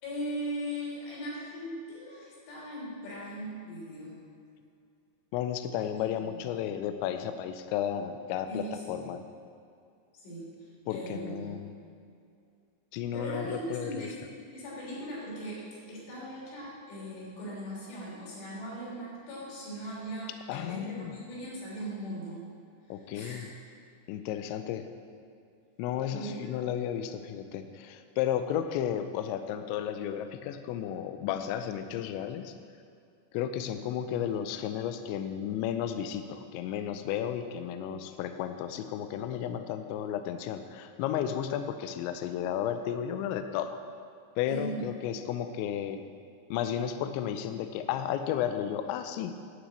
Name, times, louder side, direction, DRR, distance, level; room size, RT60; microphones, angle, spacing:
voice 1, 0.0-4.1 6.1-6.4 8.5-9.1 10.2-11.6 13.1-14.1 14.5-22.5 23.0-23.5 26.1-26.5 37.8-38.0 44.4-44.9, right 1 dB, 65° left, -6 dB, 5.5 m, -39 dB
voice 2, 5.3-9.2 10.9-11.7 12.9-14.1 20.5-21.1 22.9-23.5 24.1-24.9 25.8-32.5 33.3-43.8 44.4-46.0 46.5-49.3, left 10 dB, 85° left, 8 dB, 2.8 m, -33 dB
11.5 x 6.1 x 8.3 m, 2.4 s
omnidirectional pair, 5.5 m